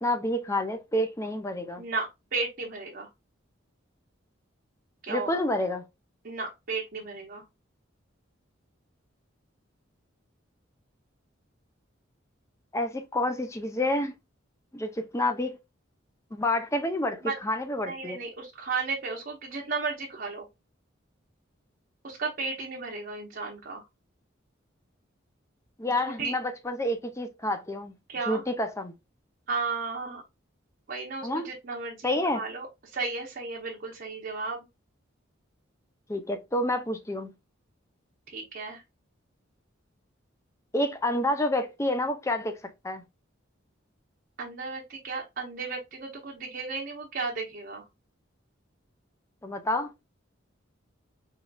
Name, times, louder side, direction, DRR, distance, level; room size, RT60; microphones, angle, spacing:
voice 1, 0.0-1.8 5.1-5.8 12.7-14.1 14.7-15.6 16.3-18.2 25.8-28.0 28.3-28.9 31.2-31.5 32.0-32.4 36.1-37.3 40.7-42.6 42.8-43.0 49.4-49.9, left 1 dB, 15° left, 0.5 m, -28 dB
voice 2, 1.8-3.1 5.0-5.4 6.2-7.4 17.2-17.4 17.9-20.5 22.0-23.8 26.0-26.3 28.1-28.4 29.5-30.2 30.9-34.7 38.3-38.8 44.4-47.9, right 4 dB, 50° right, 0.8 m, -34 dB
4.6 x 3.1 x 2.3 m
head